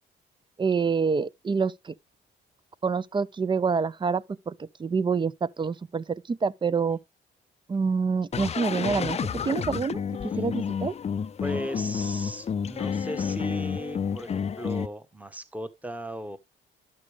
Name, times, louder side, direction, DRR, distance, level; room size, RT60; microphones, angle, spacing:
voice 1, 0.6-1.9 2.8-7.0 7.7-10.9, right 5 dB, 25° right, 0.5 m, -27 dB
sound 1, 8.3-14.9, left 7 dB, 35° left, 0.5 m, -30 dB
voice 2, 11.4-16.4, equal, 5° right, 1.1 m, -37 dB
11.0 x 6.6 x 3.3 m
cardioid pair, 90°, 20 cm